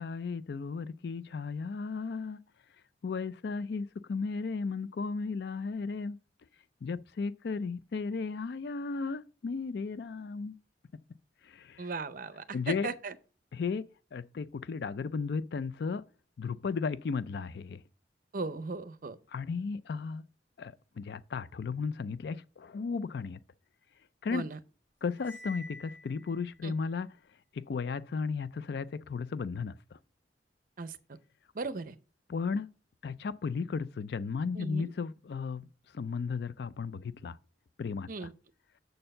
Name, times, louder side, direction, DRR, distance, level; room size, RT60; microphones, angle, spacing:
voice 1, 0.0-2.4 3.0-6.2 6.8-10.6 11.4-11.9 12.5-12.9 13.5-16.0 16.4-17.8 19.3-20.2 20.6-23.4 24.2-24.4 25.0-27.1 27.5-30.0 32.3-32.7 33.0-35.6 35.9-37.4 37.8-38.3, left 5 dB, 60° left, 0.4 m, -35 dB
voice 2, 11.8-13.1 18.3-19.2 24.3-24.6 26.6-26.7 30.8-30.9 31.5-31.9 34.6-34.9 38.1-38.3, right 3 dB, 50° right, 0.6 m, -37 dB
Cymbal, 25.1-26.6, left 1 dB, 10° left, 2.0 m, -48 dB
6.5 x 4.4 x 6.5 m
head